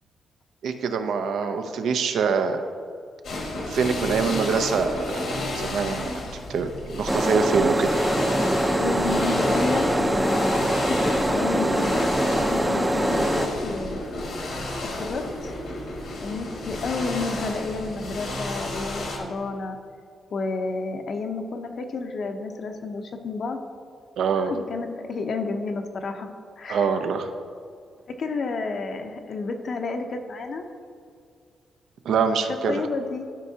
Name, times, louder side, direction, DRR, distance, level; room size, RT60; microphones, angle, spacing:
voice 1, 0.6-2.6 3.7-6.1 6.5-8.0 24.2-24.5 26.7-27.3 32.0-32.8, right 5 dB, 75° right, 7 dB, 0.6 m, -24 dB
sound 1, 3.2-19.2, left 1 dB, 75° left, 1.5 m, -31 dB
sound 2, 7.1-13.5, right 1 dB, 10° right, 0.5 m, -23 dB
voice 2, 8.8-12.1 12.3-14.0 14.9-15.5 16.2-19.8 20.3-23.6 24.4-26.3 26.6-27.0 28.1-30.7 32.7-33.3, left 3 dB, 50° left, 5 dB, 0.7 m, -31 dB
13.0 x 5.5 x 2.8 m, 2.3 s
cardioid pair, 125°, 0 cm